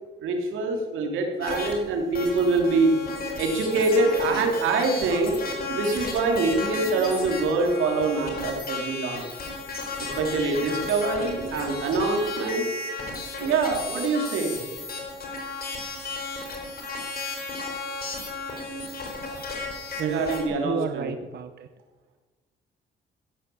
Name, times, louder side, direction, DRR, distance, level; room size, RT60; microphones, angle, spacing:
voice 1, 0.2-2.9 3.4-5.4 5.7-9.2 10.0-12.6 13.4-14.6 20.0-21.1, right 3 dB, 85° right, 2 dB, 3.4 m, -24 dB
sound 1, 1.4-1.7 2.1-20.4, left 3 dB, 50° left, 4.4 m, -34 dB
voice 2, 20.0-21.7, right 7 dB, 55° right, 9 dB, 0.9 m, -32 dB
16.0 x 10.5 x 7.0 m, 1.3 s
cardioid pair, 90°, 20 cm